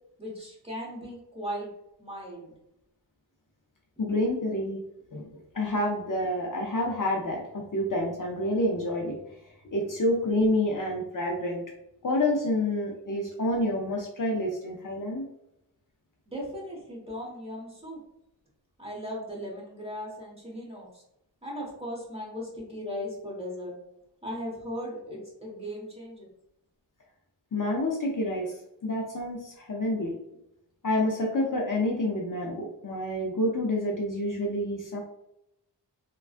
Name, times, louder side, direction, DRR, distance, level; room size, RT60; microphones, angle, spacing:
voice 1, 0.2-1.7 2.0-2.5 9.8-9.9 16.3-18.0 18.8-21.0 21.4-23.7 24.2-26.3, equal, 15° right, -4 dB, 1.3 m, -37 dB
voice 2, 4.0-4.8 5.1-9.2 9.7-11.6 12.0-15.3 27.5-30.2 30.8-35.0, left 1 dB, 45° left, -1 dB, 0.6 m, -28 dB
3.3 x 2.3 x 2.4 m, 0.82 s
wide cardioid pair, 60°, 43 cm